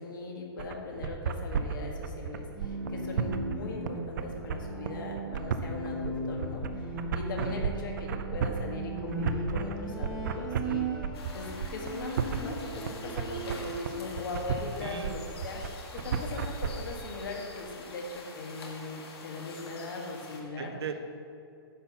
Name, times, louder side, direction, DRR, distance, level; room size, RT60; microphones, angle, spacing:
voice 1, 0.0-11.1 11.3-20.7, left 3 dB, 55° left, 1 dB, 1.6 m, -39 dB
sound 1, 0.6-16.7, right 6 dB, 50° right, 0.5 m, -33 dB
Bowed string instrument, 2.4-14.1 14.5-15.3, right 2 dB, ahead, 0.9 m, -38 dB
voice 2, 7.4-7.8 14.8-15.2 20.6-21.1, right 6 dB, 85° right, 8 dB, 0.8 m, -38 dB
sound 2, 11.1-20.4, left 3 dB, 75° left, 1.7 m, -46 dB
10.0 x 4.1 x 6.9 m, 2.5 s
hypercardioid pair, 170°, 13 cm